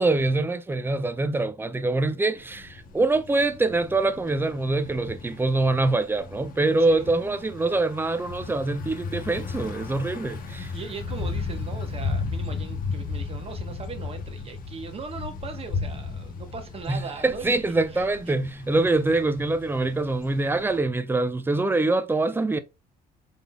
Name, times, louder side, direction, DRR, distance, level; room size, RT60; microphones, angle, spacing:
voice 1, 0.0-10.7 16.9-22.6, right 2 dB, 10° right, 0.4 m, -24 dB
Thunder / Bicycle, 2.4-20.8, left 4 dB, 55° left, 1.0 m, -35 dB
voice 2, 6.8-7.2 10.2-18.3, right 5 dB, 35° right, 1.0 m, -39 dB
3.9 x 3.4 x 2.2 m
cardioid pair, 110°, 17 cm